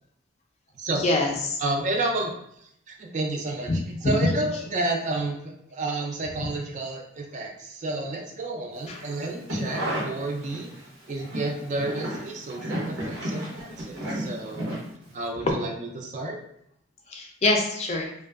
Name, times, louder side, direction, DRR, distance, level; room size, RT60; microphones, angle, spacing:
voice 1, 1.0-1.6 3.7-3.8 4.0-4.3 8.9-9.0 15.4-15.5 17.1-18.1, left 2 dB, 35° left, 0 dB, 0.4 m, -24 dB
voice 2, 1.6-2.3 2.6-3.7 4.0-10.7 11.1-14.7 15.1-16.4, right 2 dB, 40° right, 1 dB, 0.4 m, -31 dB
sound 1, 9.2-10.8 11.2-15.3 15.5-15.6, equal, 90° right, 0.8 m, -32 dB
2.5 x 2.2 x 2.3 m, 0.74 s
head